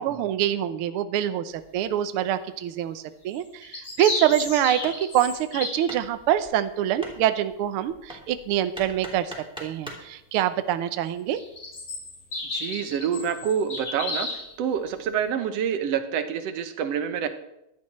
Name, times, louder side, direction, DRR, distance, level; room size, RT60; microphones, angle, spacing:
voice 1, 0.0-9.3 9.6-11.4, right 11 dB, 85° right, 10 dB, 1.2 m, -25 dB
sound 1, 3.3-5.9 11.4-14.5, left 3 dB, 50° left, 5.4 m, -33 dB
Hammer, 4.3-10.1, right 1 dB, ahead, 2.6 m, -43 dB
voice 2, 12.5-14.3 14.6-17.3, right 8 dB, 65° right, 9 dB, 1.9 m, -27 dB
15.5 x 11.5 x 4.3 m, 0.86 s
omnidirectional pair, 3.4 m